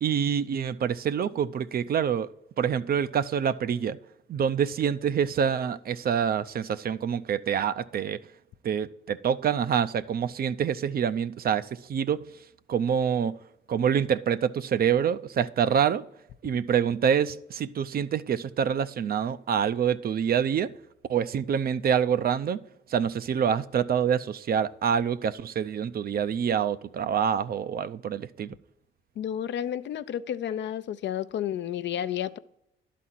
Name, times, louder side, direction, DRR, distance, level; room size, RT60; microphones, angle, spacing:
voice 1, 0.0-2.3 2.6-4.0 4.3-8.2 8.6-12.2 12.7-13.4 13.7-16.0 16.4-20.7 21.1-22.6 22.9-28.5, right 8 dB, 50° right, 0.5 m, -26 dB
voice 2, 29.2-32.4, left 10 dB, 65° left, 0.6 m, -31 dB
11.5 x 4.2 x 7.6 m
cardioid pair, 90°, 20 cm